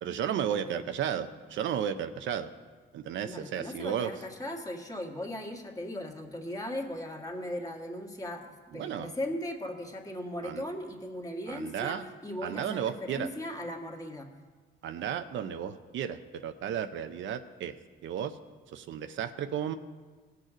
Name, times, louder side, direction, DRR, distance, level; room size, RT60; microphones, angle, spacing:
voice 1, 0.0-2.5 2.9-4.1 8.7-9.1 10.4-10.6 11.5-12.0 12.4-13.3 14.8-17.8 18.0-18.4 18.7-19.7, right 9 dB, 75° right, 9 dB, 0.6 m, -33 dB
voice 2, 0.5-0.8 3.2-14.3, left 1 dB, 20° left, 1 dB, 1.7 m, -38 dB
18.0 x 6.6 x 5.0 m, 1.4 s
cardioid pair, 90°, 20 cm